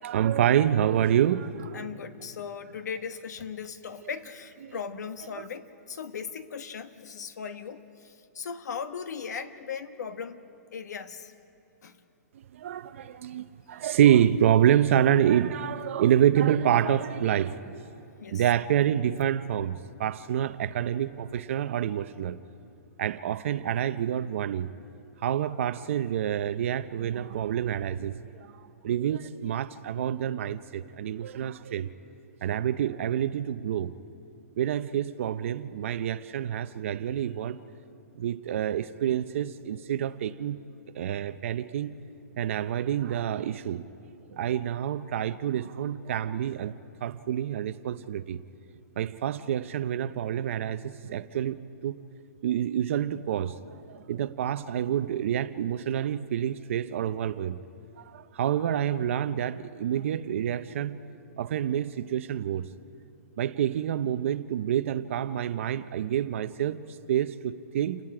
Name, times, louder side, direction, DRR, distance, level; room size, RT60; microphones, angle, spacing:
voice 1, 0.0-1.9 4.6-5.0 5.3-5.4 12.5-17.8 18.3-22.4 23.0-24.7 25.2-28.5 28.8-31.9 32.4-33.9 34.6-37.6 38.2-40.6 41.0-41.9 42.4-43.9 44.3-46.7 47.0-48.4 49.0-52.0 52.4-53.5 53.9-57.6 58.0-61.0 61.4-62.7 63.4-66.8 67.1-68.0, right 10 dB, 50° right, 0.6 m, -27 dB
voice 2, 1.7-7.8 8.3-10.4 10.7-11.3 11.8-11.9 18.2-18.4, left 6 dB, 75° left, 1.2 m, -38 dB
29.5 x 18.0 x 4.9 m
hypercardioid pair, 165°, 9 cm